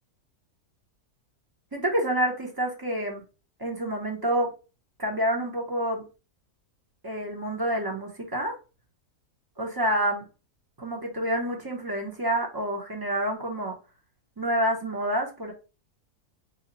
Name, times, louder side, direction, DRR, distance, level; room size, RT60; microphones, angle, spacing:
voice 1, 1.7-3.2 3.6-4.5 5.0-6.0 7.0-8.5 9.6-10.2 10.8-13.8 14.4-15.5, right 1 dB, 25° right, 0 dB, 0.5 m, -28 dB
3.0 x 2.2 x 3.9 m, 0.31 s
omnidirectional pair, 1.6 m